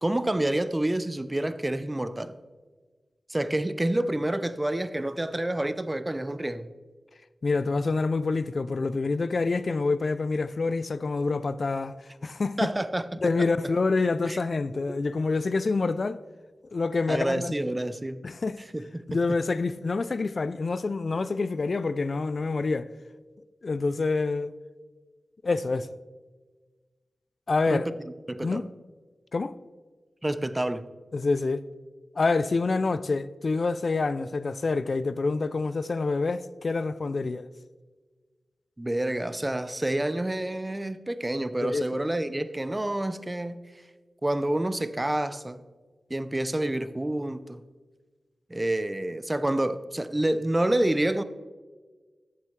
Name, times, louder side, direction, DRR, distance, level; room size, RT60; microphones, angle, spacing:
voice 1, 0.0-2.3 3.3-6.7 12.6-13.5 14.3-14.4 17.1-18.2 18.7-19.0 27.7-28.0 28.3-28.7 30.2-30.8 38.8-43.6 44.2-45.6 46.1-47.6 48.5-51.2, right 1 dB, 25° right, 0.6 m, -28 dB
voice 2, 7.4-11.9 12.2-12.7 13.2-16.2 16.7-17.5 18.2-18.6 19.1-22.9 23.6-24.5 25.4-25.9 27.5-27.9 28.4-28.7 29.3-29.5 31.1-31.6 32.2-37.5 41.6-41.9, left 3 dB, 60° left, 0.4 m, -27 dB
14.0 x 7.4 x 3.2 m
cardioid pair, 45°, 0 cm